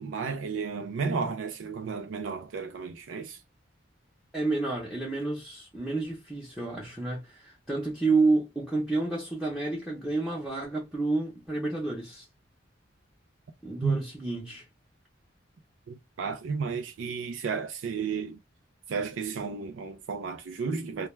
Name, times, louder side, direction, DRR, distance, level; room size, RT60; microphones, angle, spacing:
voice 1, 0.0-3.4 13.8-14.0 15.9-18.4 18.9-21.1, right 5 dB, 80° right, 0.4 m, -32 dB
voice 2, 4.3-12.3 13.6-14.6, right 3 dB, 5° right, 0.6 m, -29 dB
2.2 x 2.2 x 3.0 m
head